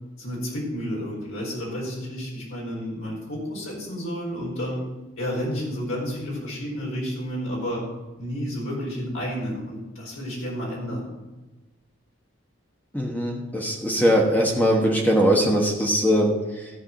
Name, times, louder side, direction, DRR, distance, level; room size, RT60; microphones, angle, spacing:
voice 1, 0.2-4.9 5.2-7.8 8.2-11.1, equal, 70° left, -3 dB, 4.4 m, -31 dB
voice 2, 12.9-16.7, equal, 10° left, -1 dB, 1.2 m, -21 dB
14.0 x 4.9 x 7.4 m, 1.1 s
head